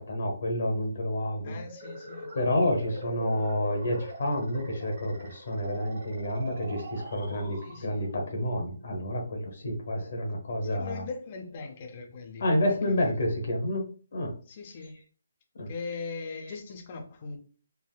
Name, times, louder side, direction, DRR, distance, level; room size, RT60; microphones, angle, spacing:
voice 1, 0.0-1.6 2.3-11.1 12.4-13.9 14.1-14.3 15.5-15.7 16.3-16.6, left 1 dB, 45° left, 0.8 m, -29 dB
voice 2, 1.4-2.3 7.6-8.1 10.7-12.5 12.9-13.1 14.5-14.9 15.7-17.4, left 4 dB, 25° left, 0.4 m, -40 dB
sound 1, 1.6-8.1, right 1 dB, 45° right, 1.2 m, -43 dB
3.4 x 2.4 x 2.3 m
hypercardioid pair, 180°, 0 cm